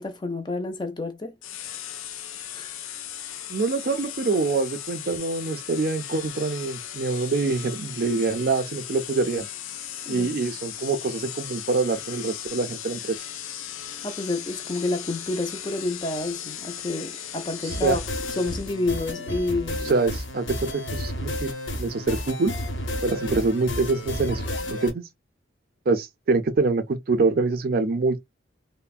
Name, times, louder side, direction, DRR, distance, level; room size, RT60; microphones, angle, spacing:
voice 1, 0.0-1.3 2.5-2.8 10.1-10.3 14.0-18.0 18.3-19.9, left 2 dB, 20° left, 0.5 m, -29 dB
sound 1, 1.4-19.0, left 10 dB, 85° left, 0.5 m, -37 dB
voice 2, 3.5-9.5 10.1-13.2 17.6-18.0 19.9-20.5 20.7-22.5 23.0-25.1 25.9-28.2, right 3 dB, 50° right, 0.4 m, -25 dB
sound 2, 17.7-24.9, left 1 dB, 70° left, 0.9 m, -32 dB
3.3 x 2.0 x 2.2 m
head